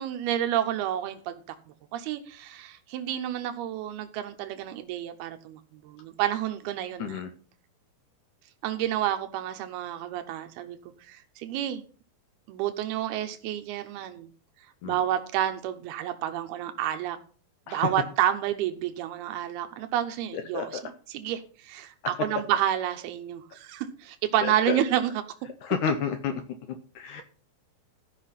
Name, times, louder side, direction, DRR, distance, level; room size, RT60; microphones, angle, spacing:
voice 1, 0.0-1.4 1.9-7.2 8.6-10.8 11.1-11.8 12.5-14.3 14.8-17.2 17.7-20.7 21.1-25.1, right 11 dB, 90° right, 7 dB, 2.8 m, -29 dB
voice 2, 7.0-7.3 14.8-15.0 17.7-18.0 20.3-20.8 22.2-22.3 24.4-24.8 25.6-26.4 26.7-27.2, left 7 dB, 70° left, 8 dB, 1.9 m, -31 dB
14.5 x 5.5 x 5.7 m, 0.40 s
omnidirectional pair, 4.4 m